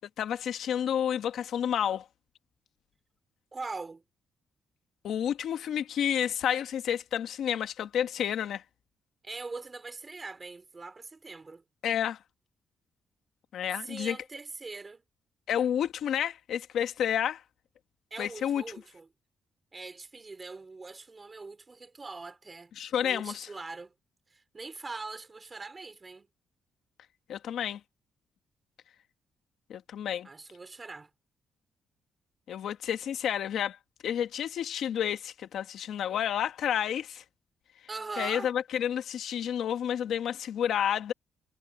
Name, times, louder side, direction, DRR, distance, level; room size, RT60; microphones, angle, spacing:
voice 1, 0.2-2.0 5.0-8.6 11.8-12.2 13.5-14.2 15.5-17.4 18.2-18.6 22.8-23.5 27.3-27.8 29.7-30.3 32.5-33.8 34.0-37.2 38.2-41.1, left 9 dB, 75° left, 1.4 m, -30 dB
voice 2, 3.5-4.0 9.2-11.6 13.7-15.0 18.1-19.1 19.7-22.7 23.0-23.9 24.3-26.3 30.2-31.1 37.9-38.5, right 3 dB, 25° right, 4.1 m, -42 dB
cardioid pair, 145°, 0 cm